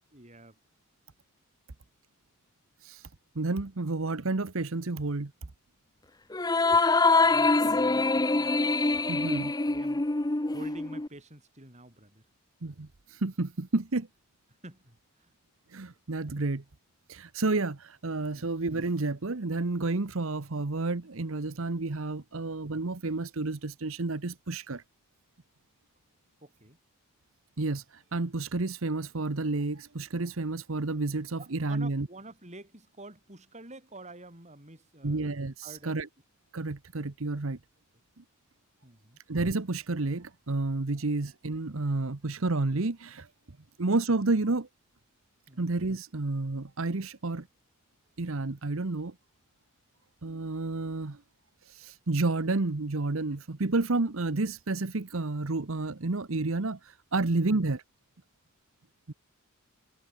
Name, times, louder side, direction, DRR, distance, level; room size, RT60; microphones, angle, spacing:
voice 1, 0.1-0.6 7.2-8.8 9.6-12.3 14.6-15.3 18.3-18.5 26.4-26.8 31.4-35.2 35.6-36.0 37.3-37.4 38.8-39.2 40.9-41.0 45.5-45.7 57.2-57.5, right 2 dB, 30° right, 5.7 m, -49 dB
voice 2, 3.3-5.3 9.1-9.5 12.6-14.1 15.7-16.6 17.1-24.8 27.6-32.1 35.0-36.1 36.5-37.6 39.3-43.3 43.8-44.7 45.6-47.5 48.2-49.1 50.2-51.2 51.6-57.8 59.1-59.2, right 3 dB, 65° right, 1.0 m, -30 dB
sound 1, 6.3-11.1, left 3 dB, 20° left, 0.7 m, -24 dB
head